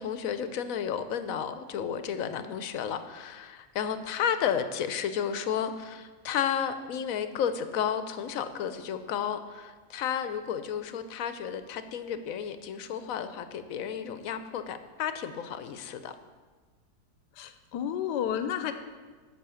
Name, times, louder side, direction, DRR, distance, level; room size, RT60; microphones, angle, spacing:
voice 1, 0.0-16.1, left 8 dB, 65° left, 10 dB, 1.0 m, -32 dB
voice 2, 17.4-18.7, left 9 dB, 85° left, 10 dB, 1.3 m, -31 dB
10.5 x 6.1 x 7.0 m, 1.4 s
omnidirectional pair, 1.8 m